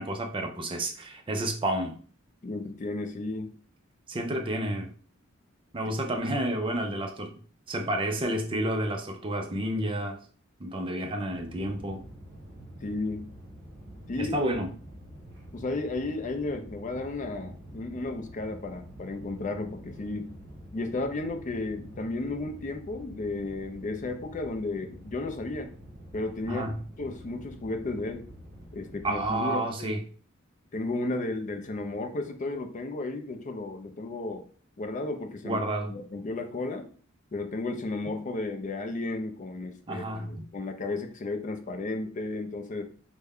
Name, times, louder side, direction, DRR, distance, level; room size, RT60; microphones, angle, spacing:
voice 1, 0.0-2.0 4.1-4.9 5.7-7.4 7.7-10.2 10.6-12.0 14.2-14.7 26.5-26.8 29.0-30.0 35.4-35.9 39.9-40.5, right 1 dB, 25° right, 0.5 m, -30 dB
voice 2, 2.4-3.5 12.8-13.3 14.1-14.3 15.5-20.3 20.7-25.7 26.1-28.3 28.7-29.9 30.7-34.4 34.8-35.6 35.9-36.9 37.3-42.8, left 2 dB, 35° left, 0.4 m, -33 dB
sound 1, 11.3-29.4, right 1 dB, 55° right, 1.1 m, -47 dB
3.3 x 2.1 x 3.5 m
head